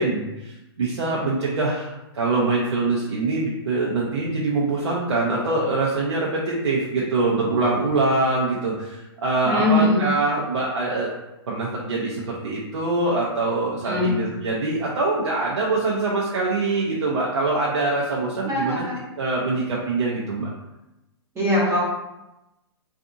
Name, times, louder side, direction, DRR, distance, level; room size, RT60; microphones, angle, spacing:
voice 1, 0.0-11.1 11.5-18.8 19.2-20.5, right 3 dB, 85° right, -5 dB, 0.6 m, -24 dB
voice 2, 9.4-10.0 13.8-14.2 18.4-19.0 21.3-21.8, left 2 dB, 20° right, -6 dB, 0.8 m, -21 dB
2.6 x 2.4 x 2.5 m, 0.95 s
hypercardioid pair, 125°, 14 cm